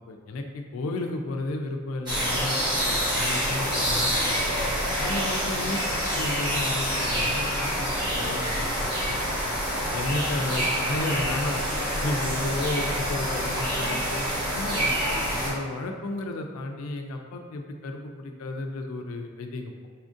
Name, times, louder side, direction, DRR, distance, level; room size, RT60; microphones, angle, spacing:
voice 1, 0.1-2.6 2.8-4.7 5.0-5.8 6.1-9.5 9.9-11.7 12.0-14.2 14.5-19.9, left 2 dB, 85° left, 4 dB, 0.4 m, -33 dB
sound 1, 2.1-15.5, equal, 20° right, 1.0 m, -27 dB
4.2 x 2.6 x 2.4 m, 1.5 s
head